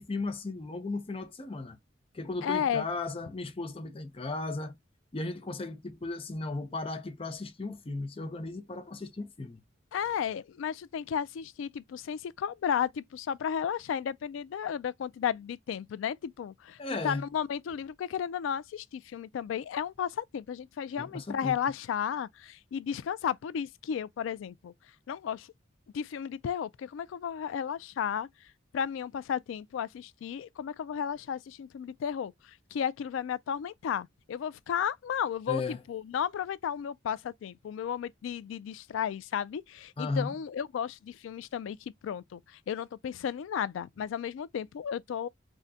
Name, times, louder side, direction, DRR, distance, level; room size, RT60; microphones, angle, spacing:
voice 1, 0.0-1.8 2.1-4.8 5.1-9.6 16.8-17.2 21.0-21.6 35.5-35.8 40.0-40.3, left 3 dB, 30° left, 0.5 m, -35 dB
voice 2, 2.4-2.8 9.9-16.8 17.0-24.7 25.1-25.5 25.9-28.3 28.7-45.3, left 8 dB, 80° left, 0.3 m, -33 dB
3.6 x 2.1 x 2.6 m
head